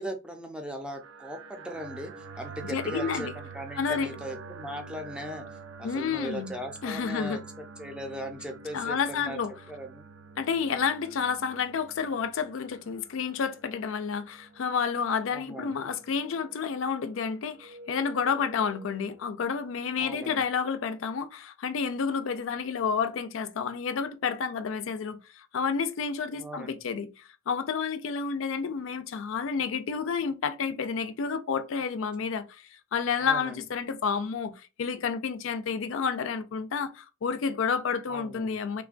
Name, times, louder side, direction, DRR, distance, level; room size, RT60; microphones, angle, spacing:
voice 1, 0.0-5.4 5.8-9.4 9.7-10.0 15.3-15.9 20.0-20.4 26.4-26.8 33.2-33.6 38.1-38.6, right 1 dB, 5° right, 0.5 m, -39 dB
sound 1, 0.9-20.6, right 5 dB, 65° right, 0.4 m, -47 dB
voice 2, 2.6-3.3 3.8-4.1 5.8-6.5 6.8-7.4 8.7-9.5 10.4-27.1 27.5-32.6 32.9-38.8, left 6 dB, 70° left, 0.4 m, -30 dB
3.2 x 2.2 x 2.4 m
head